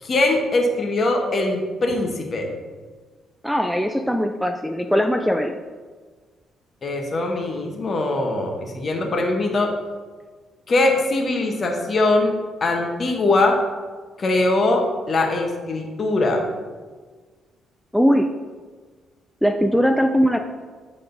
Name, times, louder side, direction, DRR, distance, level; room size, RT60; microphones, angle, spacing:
voice 1, 0.0-2.5 6.8-9.7 10.7-12.3 12.6-13.6 14.2-16.4, left 2 dB, 45° left, 2 dB, 1.2 m, -21 dB
voice 2, 3.4-5.6 17.9-18.4 19.4-20.4, equal, ahead, 5 dB, 0.4 m, -20 dB
9.1 x 3.6 x 3.9 m, 1.4 s
cardioid pair, 90°, 0 cm